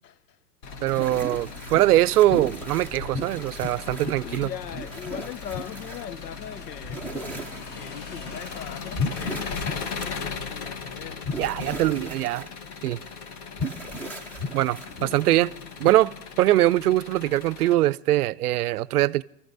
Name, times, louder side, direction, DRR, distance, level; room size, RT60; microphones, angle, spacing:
Engine, 0.6-17.8, left 5 dB, 40° left, 1.2 m, -38 dB
voice 1, 0.8-4.5 11.4-12.5 12.8-13.0 14.5-15.5 15.8-19.2, right 15 dB, 65° right, 0.6 m, -22 dB
sound 1, 0.9-15.9, left 1 dB, 5° left, 0.6 m, -36 dB
Motorcycle / Engine, 2.8-9.8, left 3 dB, 20° left, 1.0 m, -49 dB
voice 2, 4.2-11.4 15.0-15.7, left 10 dB, 75° left, 0.7 m, -40 dB
28.0 x 15.0 x 2.6 m
hypercardioid pair, 125°, 49 cm